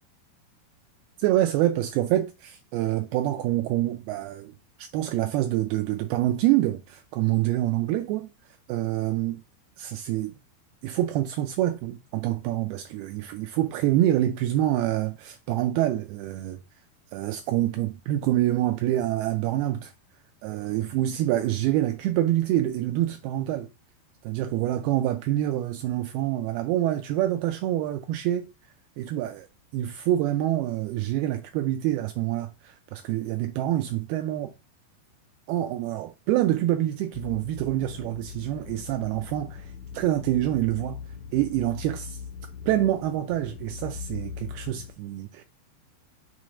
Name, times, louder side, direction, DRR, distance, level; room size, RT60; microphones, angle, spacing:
voice 1, 1.2-9.4 9.8-10.3 10.8-16.6 17.1-19.9 20.4-23.7 24.2-28.5 29.0-29.5 29.7-34.5 35.5-41.0 41.3-42.2 42.7-45.4, right 13 dB, 90° right, 2.2 m, -26 dB
sound 1, 37.1-44.9, left 7 dB, 90° left, 1.8 m, -40 dB
6.7 x 3.1 x 4.9 m
omnidirectional pair, 5.0 m